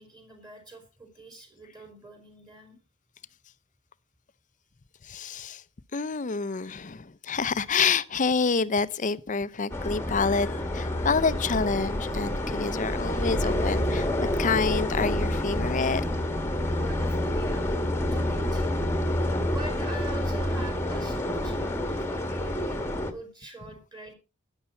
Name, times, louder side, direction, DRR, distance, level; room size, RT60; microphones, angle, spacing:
voice 1, 0.0-2.8 16.8-18.7 19.5-24.2, right 2 dB, 20° right, 4.6 m, -44 dB
voice 2, 5.0-5.6 5.9-16.1, left 5 dB, 35° left, 0.6 m, -28 dB
sound 1, 9.7-23.1, left 1 dB, 10° left, 1.5 m, -28 dB
13.0 x 10.0 x 4.4 m
head